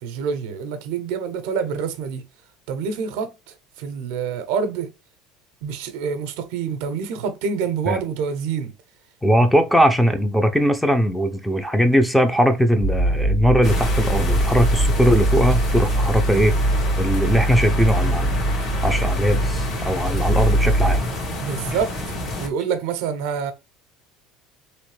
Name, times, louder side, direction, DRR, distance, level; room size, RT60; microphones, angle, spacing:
voice 1, 0.0-2.2 2.7-3.3 3.8-4.9 5.6-8.7 21.4-23.5, right 6 dB, 75° right, 0.6 m, -27 dB
voice 2, 9.2-16.5 17.0-18.4 18.8-21.0, equal, ahead, 0.5 m, -19 dB
sound 1, 12.8-21.0, right 1 dB, 20° left, 0.9 m, -22 dB
sound 2, 13.6-22.5, left 1 dB, 55° left, 1.6 m, -28 dB
3.1 x 3.0 x 3.2 m
supercardioid pair, 100°, 0 cm